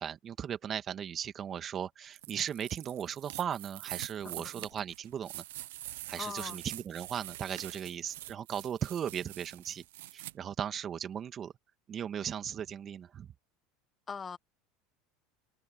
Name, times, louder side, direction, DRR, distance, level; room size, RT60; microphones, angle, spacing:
voice 1, 0.0-5.4 6.1-9.8 10.1-11.5 11.9-13.3, right 9 dB, 35° right, 2.1 m, -37 dB
sound 1, 2.1-10.3, right 16 dB, 80° right, 0.8 m, -45 dB
voice 2, 6.1-6.6 14.1-14.4, left 6 dB, 25° left, 1.4 m, -40 dB
supercardioid pair, 100°, 0 cm